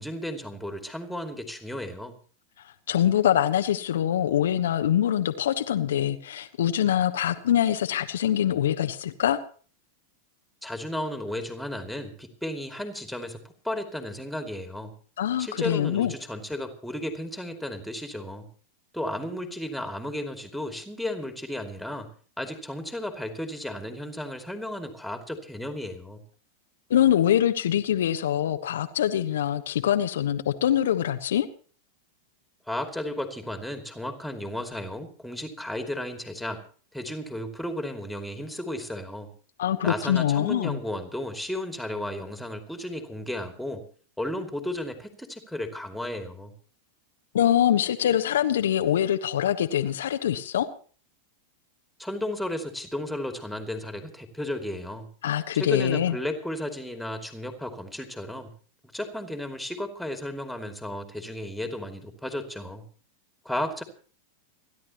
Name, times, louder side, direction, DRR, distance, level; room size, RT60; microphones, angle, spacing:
voice 1, 0.0-2.1 10.6-14.9 15.4-18.5 18.9-22.1 22.4-26.2 32.7-36.6 36.9-39.3 39.8-43.8 44.2-46.5 52.0-55.1 55.5-58.5 58.9-62.8 63.4-63.8, left 1 dB, ahead, 5 dB, 2.6 m, -34 dB
voice 2, 2.6-9.4 15.2-16.1 26.9-31.5 39.6-40.8 47.3-50.7 55.2-56.1, left 10 dB, 60° left, 7 dB, 1.0 m, -24 dB
30.0 x 11.5 x 3.0 m, 0.42 s
figure-of-eight pair, 90°, 0 cm